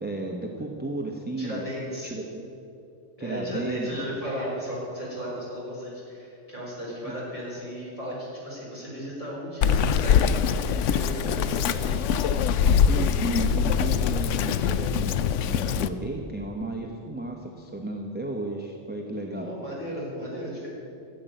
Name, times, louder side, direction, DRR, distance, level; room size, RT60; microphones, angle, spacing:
voice 1, 0.0-1.6 2.0-2.5 3.2-3.9 12.8-19.6, right 2 dB, 10° right, 1 dB, 0.9 m, -34 dB
voice 2, 1.4-2.1 3.2-12.0 19.3-20.7, equal, 30° left, -6 dB, 4.5 m, -35 dB
Bird vocalization bird call bird song, 9.6-15.9, left 7 dB, 85° left, 0.9 m, -23 dB
13.0 x 7.6 x 9.3 m, 2.6 s
omnidirectional pair, 1.2 m